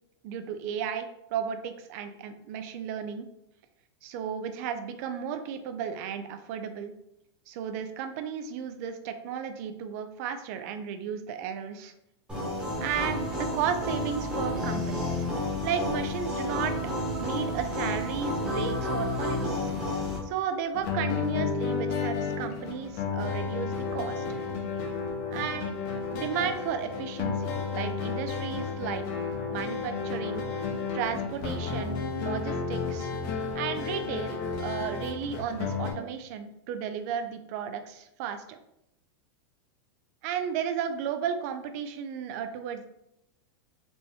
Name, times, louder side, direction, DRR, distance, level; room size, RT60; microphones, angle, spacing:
voice 1, 0.2-3.3 4.0-6.9 7.5-11.9 12.8-15.3 15.6-16.8 17.2-19.7 20.2-24.4 25.3-25.8 26.1-29.2 29.5-30.5 30.9-33.1 33.5-38.6 40.2-42.9, right 8 dB, 35° right, 8 dB, 0.4 m, -34 dB
sound 1, 12.3-20.2, left 1 dB, 5° right, 1.0 m, -31 dB
sound 2, 20.7-35.9, left 5 dB, 35° left, 0.7 m, -32 dB
4.2 x 2.9 x 3.4 m, 0.82 s
supercardioid pair, 175°, 14 cm